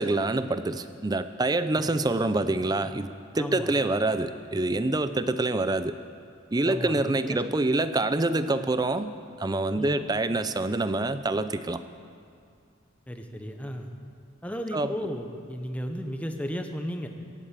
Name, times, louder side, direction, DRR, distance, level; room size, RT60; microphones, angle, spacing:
voice 1, 0.0-6.0 6.5-9.1 9.4-11.8 14.7-14.9, right 2 dB, 20° right, 12 dB, 0.5 m, -26 dB
voice 2, 3.3-3.7 6.6-7.4 9.8-10.1 13.1-13.9 14.4-17.1, equal, 5° left, 4 dB, 1.0 m, -34 dB
16.0 x 8.7 x 8.3 m, 2.3 s
head